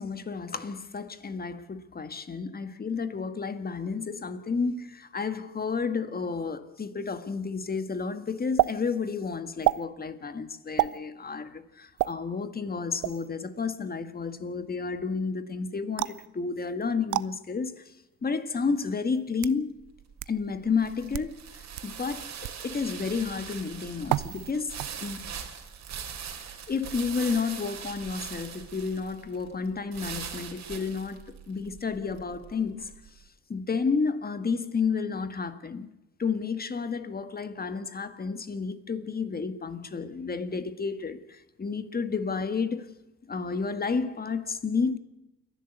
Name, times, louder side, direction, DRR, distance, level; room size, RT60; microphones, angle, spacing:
voice 1, 0.0-17.8 18.2-19.8 20.3-21.4 21.8-25.2 26.7-32.9 33.5-35.9 36.2-42.9 43.3-45.0, left 5 dB, 30° left, 1.7 m, -31 dB
sound 1, 8.6-8.7 9.6-9.8 10.8-11.0 12.0-12.1 13.0-13.3 16.0-16.3 17.1-17.3 18.2-18.3 19.1-19.6 20.2-20.3 21.0-21.3 21.8-21.9 22.4-22.6 24.1-24.5 24.8-25.2, right 17 dB, 90° right, 0.6 m, -28 dB
sound 2, 19.8-33.1, right 7 dB, 60° right, 3.2 m, -41 dB
29.0 x 11.5 x 8.2 m
cardioid pair, 90°, 30 cm